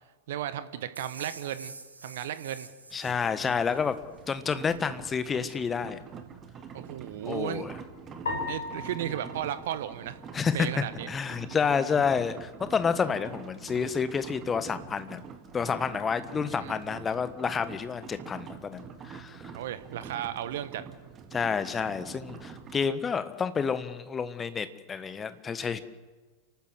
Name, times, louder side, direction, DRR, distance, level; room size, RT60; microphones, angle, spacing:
voice 1, 0.3-1.7 2.0-2.7 6.7-7.8 8.5-10.2 10.5-11.1 16.5-16.8 19.5-20.8, right 11 dB, 55° right, 13 dB, 1.2 m, -35 dB
sound 1, 1.0-4.0, right 3 dB, 80° right, 2.0 m, -47 dB
voice 2, 2.9-3.9 4.3-6.0 7.2-7.7 10.3-10.7 11.1-15.2 15.5-19.5 21.3-25.8, left 6 dB, 20° left, 12 dB, 1.3 m, -29 dB
sound 2, 3.0-22.9, right 6 dB, 25° right, 1.9 m, -45 dB
sound 3, 8.3-10.7, left 3 dB, 65° left, 5.2 m, -38 dB
29.5 x 12.5 x 7.8 m, 1.3 s
figure-of-eight pair, 90°, 0 cm